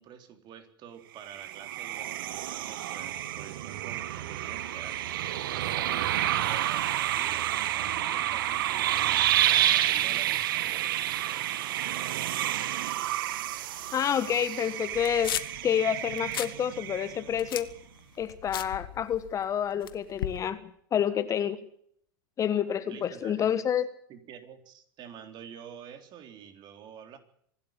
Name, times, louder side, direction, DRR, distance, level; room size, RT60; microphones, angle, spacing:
voice 1, 0.0-5.0 5.7-6.2 6.5-11.0 22.9-23.5 24.1-27.2, right 8 dB, 40° right, 6 dB, 3.8 m, -48 dB
sound 1, 1.2-17.5, right 12 dB, 65° right, 1.5 m, -29 dB
voice 2, 13.9-15.4 15.6-17.7 18.2-20.6 20.9-21.6 22.4-23.9, left 9 dB, 25° left, 12 dB, 1.3 m, -28 dB
sound 2, 14.9-15.6 16.1-16.6 16.9-19.4 19.8-20.4, left 12 dB, 70° left, 1.5 m, -36 dB
25.5 x 12.0 x 9.1 m, 0.67 s
hypercardioid pair, 110°, 12 cm